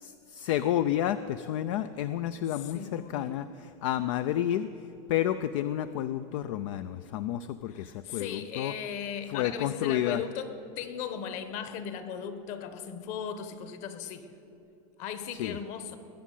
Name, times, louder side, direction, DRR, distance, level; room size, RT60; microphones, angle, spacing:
voice 1, 0.0-4.7 5.1-8.7 9.3-10.2 15.3-15.6, left 11 dB, 60° left, 12 dB, 0.5 m, -30 dB
voice 2, 2.5-3.4 7.7-14.3 15.0-16.0, left 8 dB, 45° left, 11 dB, 1.3 m, -37 dB
20.5 x 7.2 x 8.4 m, 2.9 s
supercardioid pair, 155°, 18 cm